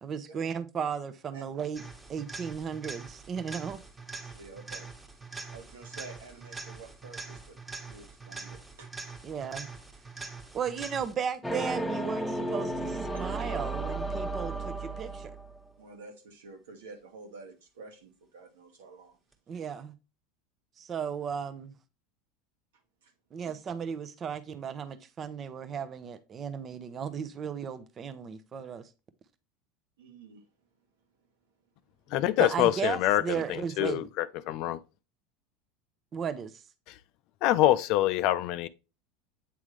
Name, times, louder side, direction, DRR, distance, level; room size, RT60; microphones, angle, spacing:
voice 1, 0.0-1.8 2.1-3.8 9.2-9.7 10.5-15.3 19.5-19.9 20.8-21.7 23.3-28.8 32.4-34.1 36.1-36.6, right 7 dB, 35° right, 0.7 m, -35 dB
sound 1, 1.7-11.4 19.3-19.4, right 4 dB, 15° right, 1.3 m, -44 dB
voice 2, 4.2-4.9 5.5-7.6 7.8-8.9 15.8-19.2 23.0-23.1 23.5-23.6 30.0-30.4, right 3 dB, 75° right, 1.5 m, -49 dB
sound 2, 11.4-15.6, right 2 dB, ahead, 1.0 m, -33 dB
voice 3, 32.1-34.8 36.9-37.0 37.4-38.7, left 14 dB, 55° left, 0.4 m, -26 dB
8.4 x 3.6 x 3.2 m
hypercardioid pair, 85°, 0 cm